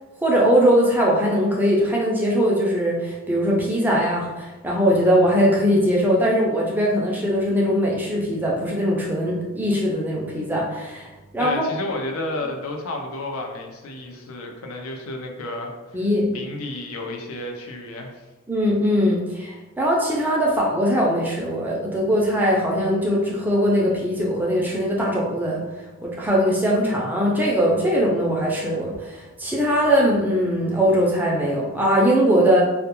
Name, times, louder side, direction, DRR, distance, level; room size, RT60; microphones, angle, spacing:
voice 1, 0.2-11.1 11.3-11.6 15.9-16.3 18.5-25.6 26.0-32.6, equal, 10° right, -3 dB, 0.3 m, -21 dB
voice 2, 11.4-16.1 16.3-18.3, left 2 dB, 85° left, 1 dB, 0.5 m, -32 dB
2.3 x 2.1 x 2.9 m, 1.1 s
head